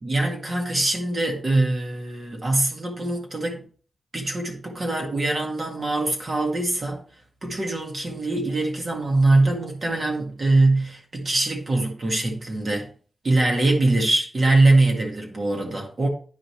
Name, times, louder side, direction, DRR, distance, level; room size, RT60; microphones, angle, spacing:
voice 1, 0.0-3.6 4.1-7.0 7.4-12.9 13.2-16.1, right 2 dB, 45° right, 1.9 m, -22 dB
9.9 x 5.2 x 3.2 m
wide cardioid pair, 115°, 0 cm